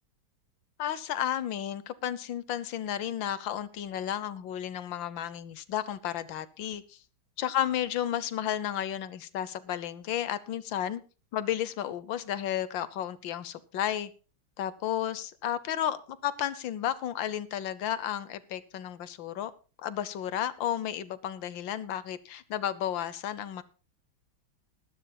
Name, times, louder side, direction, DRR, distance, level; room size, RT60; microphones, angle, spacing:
voice 1, 0.8-7.0 7.4-11.0 11.3-14.1 14.6-19.5 19.8-23.6, left 11 dB, 70° left, 1.4 m, -32 dB
20.0 x 13.0 x 2.3 m
omnidirectional pair, 2.2 m